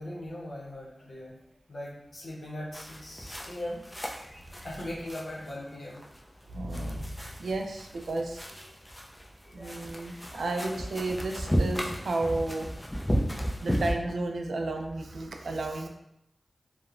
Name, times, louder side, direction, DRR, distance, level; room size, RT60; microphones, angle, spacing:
voice 1, 0.0-1.4 1.7-3.8 4.6-6.0 9.5-10.5, left 1 dB, 65° left, -5 dB, 0.8 m, -40 dB
sound 1, 2.7-13.9, equal, 15° left, 0.4 m, -34 dB
voice 2, 6.5-8.7 9.5-12.7 13.6-15.9, right 2 dB, 85° right, 3 dB, 0.3 m, -33 dB
2.8 x 2.1 x 2.4 m, 0.81 s
cardioid pair, 45°, 0 cm